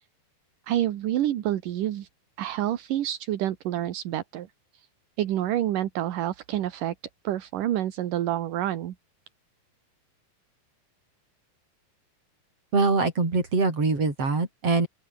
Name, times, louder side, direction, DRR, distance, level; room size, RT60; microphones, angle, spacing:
voice 1, 0.7-2.1 2.4-4.5 5.2-6.9 7.2-8.9, right 12 dB, 70° right, 2.9 m, -28 dB
voice 2, 12.7-14.9, right 4 dB, 40° right, 6.7 m, -23 dB
open air
omnidirectional pair, 4.1 m